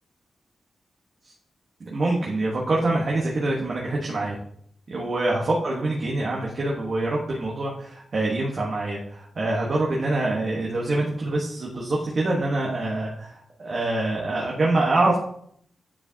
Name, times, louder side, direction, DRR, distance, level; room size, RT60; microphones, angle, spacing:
voice 1, 1.8-4.4 4.9-15.2, right 2 dB, 50° right, -3 dB, 1.2 m, -25 dB
9.7 x 4.7 x 2.8 m, 0.67 s
wide cardioid pair, 120°, 0 cm